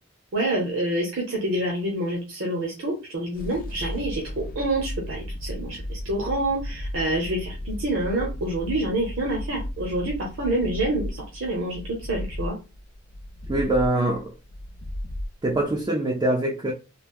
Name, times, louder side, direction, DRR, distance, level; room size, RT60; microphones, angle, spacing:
voice 1, 0.3-11.8 12.1-12.6, right 1 dB, 70° right, 0.8 m, -27 dB
sound 1, 3.3-15.9, left 1 dB, 45° left, 0.6 m, -35 dB
voice 2, 13.5-14.3 15.4-16.7, right 1 dB, 20° right, 0.4 m, -23 dB
3.2 x 2.0 x 2.4 m
head